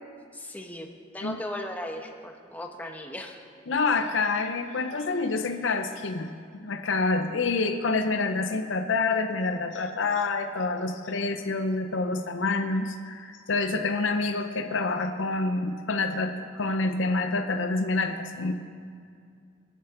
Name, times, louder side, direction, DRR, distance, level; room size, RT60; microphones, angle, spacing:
voice 1, 0.3-0.9 1.1-3.4, left 1 dB, 10° left, 2 dB, 1.1 m, -37 dB
voice 2, 3.7-6.3 6.6-18.5, left 3 dB, 70° left, 6 dB, 0.7 m, -27 dB
26.0 x 8.8 x 3.8 m, 2.3 s
head